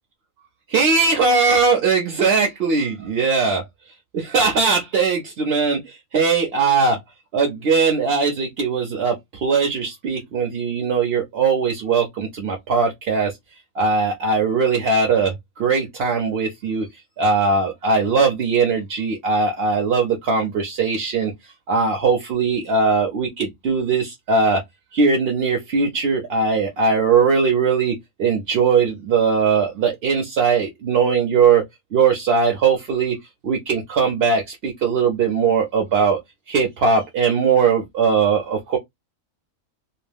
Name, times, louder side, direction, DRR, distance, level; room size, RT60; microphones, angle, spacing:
voice 1, 0.7-3.6 4.1-7.0 7.3-13.3 13.7-16.9 17.2-21.3 21.7-24.6 24.9-31.6 31.9-33.2 33.4-36.2 36.5-38.8, right 5 dB, 55° right, 0.8 m, -20 dB
2.4 x 2.2 x 3.2 m
omnidirectional pair, 1.4 m